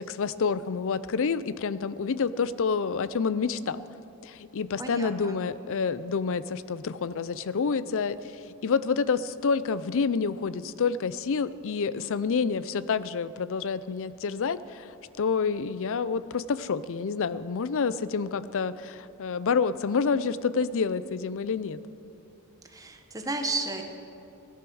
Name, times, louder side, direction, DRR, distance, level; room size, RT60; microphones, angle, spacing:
voice 1, 0.0-3.9 4.2-14.9 15.2-21.8, left 5 dB, 60° left, 15 dB, 0.5 m, -28 dB
voice 2, 4.8-5.4 22.6-23.8, right 2 dB, 15° right, 4 dB, 1.2 m, -33 dB
16.5 x 11.0 x 6.3 m, 2.8 s
head